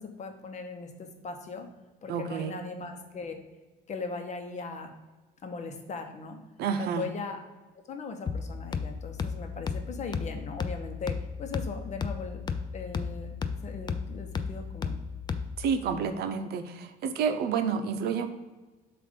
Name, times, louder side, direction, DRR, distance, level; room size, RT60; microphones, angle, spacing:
voice 1, 0.0-1.7 2.0-3.4 3.9-4.9 5.4-6.4 6.8-7.4 7.9-12.4 12.7-13.3 13.6-15.0, left 4 dB, 45° left, 5 dB, 0.9 m, -39 dB
voice 2, 2.1-2.6 6.6-7.1 15.6-18.3, right 6 dB, 70° right, 8 dB, 0.6 m, -29 dB
sound 1, 8.3-15.8, left 5 dB, 25° left, 0.4 m, -34 dB
7.3 x 2.5 x 5.1 m, 1.2 s
cardioid pair, 110°, 17 cm